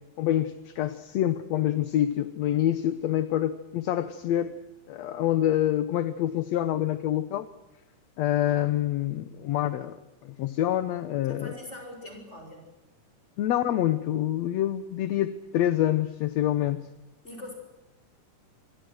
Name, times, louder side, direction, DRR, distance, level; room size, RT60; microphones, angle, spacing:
voice 1, 0.2-4.5 4.9-7.5 8.2-11.6 13.4-16.9, left 12 dB, 65° left, 13 dB, 1.9 m, -26 dB
voice 2, 11.3-12.7 17.2-17.5, left 1 dB, 20° left, 4 dB, 7.4 m, -42 dB
26.0 x 23.0 x 6.4 m, 0.98 s
omnidirectional pair, 3.9 m